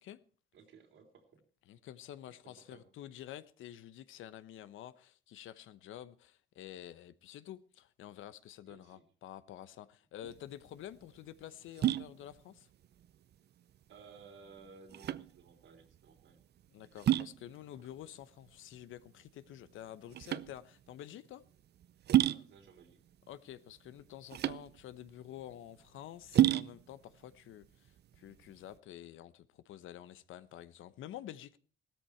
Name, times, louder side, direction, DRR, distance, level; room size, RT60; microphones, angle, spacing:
voice 1, 0.5-1.4 2.4-2.9 8.6-9.0 13.9-16.4 17.7-17.9 22.2-23.0, right 5 dB, 75° right, 3.5 m, -57 dB
voice 2, 1.7-12.7 16.7-21.4 23.3-31.6, left 12 dB, 80° left, 0.9 m, -49 dB
sound 1, 10.2-28.8, right 12 dB, 55° right, 0.6 m, -34 dB
16.0 x 13.5 x 4.5 m
cardioid pair, 90°, 20 cm